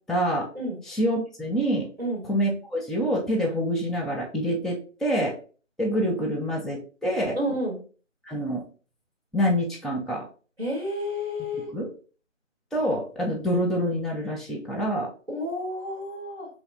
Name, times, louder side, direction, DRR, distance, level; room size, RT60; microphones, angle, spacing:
voice 1, 0.1-0.5 0.8-1.9 2.2-5.3 5.8-7.4 8.3-8.6 9.3-10.3 11.6-11.9 12.7-15.1, equal, ahead, -4 dB, 0.5 m, -26 dB
voice 2, 7.3-7.8 10.6-11.7 15.3-16.5, equal, 55° right, -2 dB, 1.9 m, -30 dB
4.4 x 3.1 x 2.7 m, 0.38 s
figure-of-eight pair, 170°, 38 cm